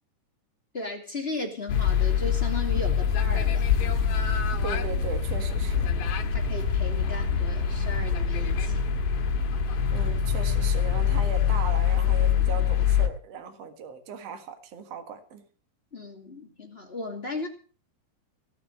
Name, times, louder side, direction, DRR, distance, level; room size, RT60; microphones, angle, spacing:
voice 1, 0.7-3.7 6.3-8.8 15.9-17.5, left 2 dB, 20° left, 1 dB, 2.4 m, -36 dB
sound 1, 1.7-13.1, left 7 dB, 75° left, 3.1 m, -24 dB
voice 2, 4.6-5.9 9.9-15.4, right 5 dB, 50° right, 7 dB, 2.5 m, -38 dB
18.0 x 6.8 x 7.6 m, 0.41 s
omnidirectional pair, 4.0 m